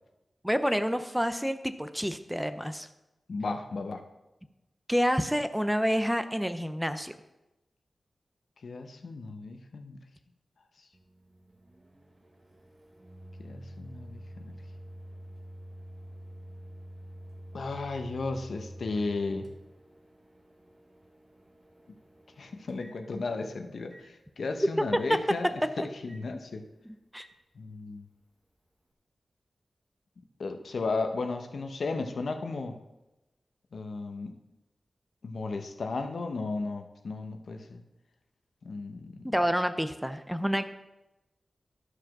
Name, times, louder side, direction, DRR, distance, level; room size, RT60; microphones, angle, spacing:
voice 1, 0.4-2.9 4.9-7.1 25.8-25.9 26.8-27.3 39.3-40.7, equal, 5° right, 10 dB, 0.6 m, -28 dB
voice 2, 3.3-4.0 8.6-10.0 13.4-14.5 17.5-19.5 22.4-25.5 26.0-26.6 27.6-28.1 30.4-32.7 33.7-34.4 35.2-37.8 38.6-39.3, left 3 dB, 75° left, 6 dB, 0.9 m, -34 dB
Microwave oven, 10.9-23.5 23.9-24.1 25.0-25.2 26.1-26.2 27.2-27.3, equal, 30° right, 1.3 m, -48 dB
11.5 x 4.9 x 6.0 m, 0.97 s
wide cardioid pair, 70°, 0 cm